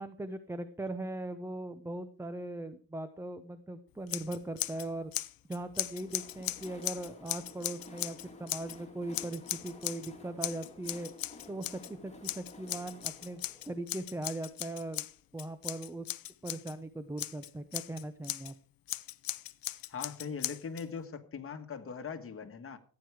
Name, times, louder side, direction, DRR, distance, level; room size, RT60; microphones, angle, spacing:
voice 1, 0.0-5.1 5.5-11.1 11.5-11.7 12.0-15.0 15.3-16.1 16.4-18.5, right 1 dB, 5° right, 11 dB, 0.7 m, -39 dB
Scissors, 4.1-4.9 5.1-8.8 9.1-10.1 10.4-11.9 12.2-16.7 17.2-18.5 18.9-20.8, left 14 dB, 75° left, 0.7 m, -38 dB
Train, 5.5-15.2, left 3 dB, 20° left, 3.0 m, -54 dB
voice 2, 19.9-22.8, left 6 dB, 40° left, 6 dB, 1.7 m, -40 dB
15.0 x 9.6 x 4.8 m, 0.40 s
cardioid pair, 135°, 36 cm